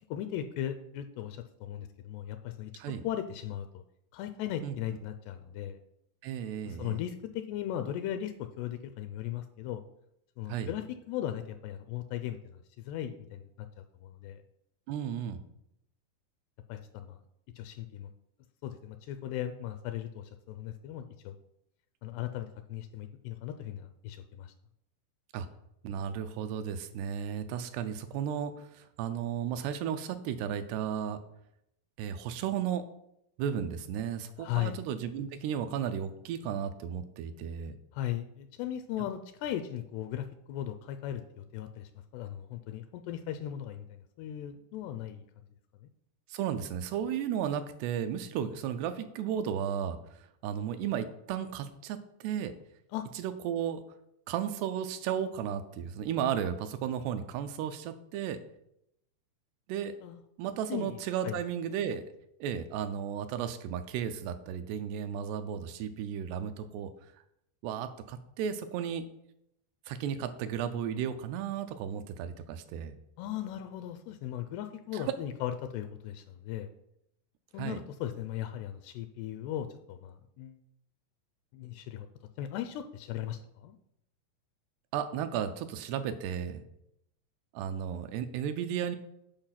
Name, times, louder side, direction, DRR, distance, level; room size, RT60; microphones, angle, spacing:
voice 1, 0.1-3.8 4.1-5.8 6.6-9.8 10.4-14.4 16.7-17.2 17.6-18.1 18.6-21.4 22.0-24.5 34.4-34.8 37.9-45.3 45.8-45.9 52.9-53.1 60.0-60.2 60.7-61.4 73.2-76.7 77.5-80.6 81.5-82.1 82.4-83.8, left 11 dB, 85° left, 9 dB, 2.5 m, -38 dB
voice 2, 6.2-7.0 10.5-10.7 14.9-15.4 25.3-25.5 25.8-31.2 32.0-32.9 33.4-37.8 46.3-52.5 53.2-53.8 54.3-58.4 59.7-59.9 60.4-62.0 62.4-66.9 67.6-69.0 69.9-72.9 74.9-75.1 77.6-77.8 84.9-86.6 87.5-89.0, right 8 dB, 80° right, 10 dB, 2.6 m, -34 dB
8.9 x 5.1 x 5.7 m, 0.78 s
omnidirectional pair, 4.9 m